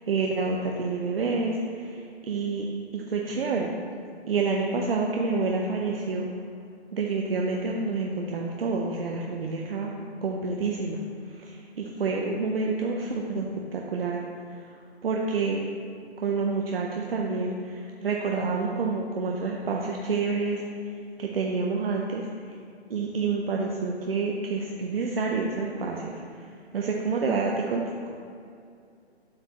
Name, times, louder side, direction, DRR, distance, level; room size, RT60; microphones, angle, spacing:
voice 1, 0.0-2.7 2.9-3.7 4.3-6.3 6.9-9.9 10.2-11.0 11.3-13.5 13.7-14.2 15.0-15.6 16.2-20.6 21.2-22.5 22.9-26.5 26.7-28.1, right 4 dB, 60° right, 0 dB, 0.8 m, -28 dB
7.5 x 6.4 x 3.1 m, 2.4 s
figure-of-eight pair, 140°, 32 cm